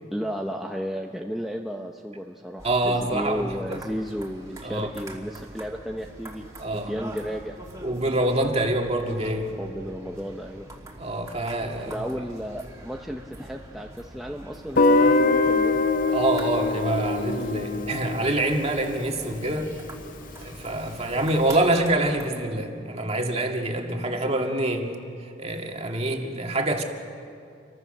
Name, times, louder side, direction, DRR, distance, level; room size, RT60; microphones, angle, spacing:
voice 1, 0.1-6.4 6.7-7.6 9.6-10.7 11.8-16.2, equal, ahead, 0 dB, 0.8 m, -33 dB
sound 1, 2.6-22.3, right 1 dB, 15° right, 2.7 m, -44 dB
voice 2, 2.6-3.8 4.6-4.9 6.6-6.9 7.8-9.5 11.0-12.0 16.1-19.7 20.4-24.9 25.4-26.8, right 1 dB, 35° right, 2 dB, 2.1 m, -26 dB
Guitar, 14.8-19.6, left 3 dB, 45° left, 0.7 m, -23 dB
28.5 x 23.5 x 6.7 m, 2.4 s
head